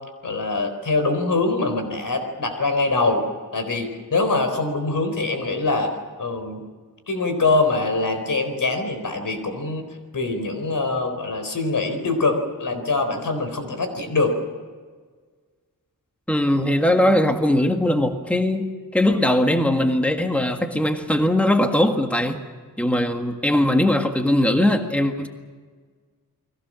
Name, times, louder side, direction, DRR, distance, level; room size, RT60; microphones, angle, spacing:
voice 1, 0.2-3.2 3.5-6.6 7.1-9.8 10.1-14.3, left 3 dB, 75° left, 4.3 m, -23 dB
voice 2, 16.3-22.4 22.8-25.3, left 1 dB, 5° left, 1.6 m, -20 dB
30.0 x 21.5 x 6.3 m
wide cardioid pair, 130°, 33 cm